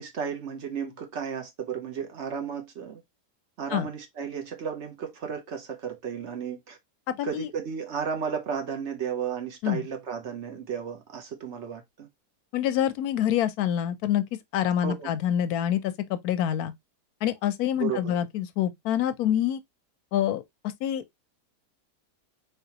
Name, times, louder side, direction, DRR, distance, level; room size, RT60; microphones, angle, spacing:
voice 1, 0.0-3.0 3.6-6.8 7.2-12.1 14.8-15.1 17.8-18.2, right 7 dB, 55° right, 0.9 m, -33 dB
voice 2, 7.1-7.5 9.6-9.9 12.5-14.2 14.5-16.7 17.2-19.6 20.1-20.4 20.8-21.0, left 10 dB, 70° left, 1.0 m, -26 dB
3.9 x 3.3 x 2.7 m
omnidirectional pair, 1.8 m